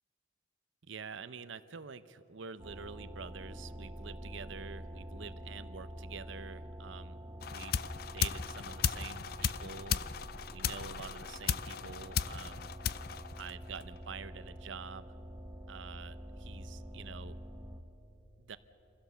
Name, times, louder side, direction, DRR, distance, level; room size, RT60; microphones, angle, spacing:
voice 1, 0.9-7.2 7.5-7.7 8.1-10.0 10.5-12.7 13.4-15.1 15.7-17.4 18.4-18.6, right 6 dB, 85° right, 13 dB, 0.7 m, -47 dB
sound 1, 2.6-17.8, equal, 25° right, 1.0 m, -47 dB
sound 2, 7.4-14.0, left 7 dB, 50° left, 0.4 m, -36 dB
25.0 x 16.0 x 6.9 m, 2.9 s
head